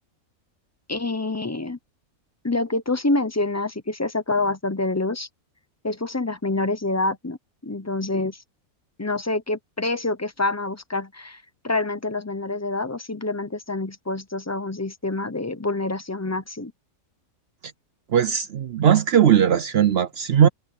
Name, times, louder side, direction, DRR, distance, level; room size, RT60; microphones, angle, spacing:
voice 1, 0.9-1.8 2.4-5.3 5.8-7.4 7.6-8.4 9.0-16.7, left 2 dB, 15° left, 0.6 m, -27 dB
voice 2, 18.1-20.5, right 9 dB, 60° right, 0.6 m, -18 dB
omnidirectional pair, 1.6 m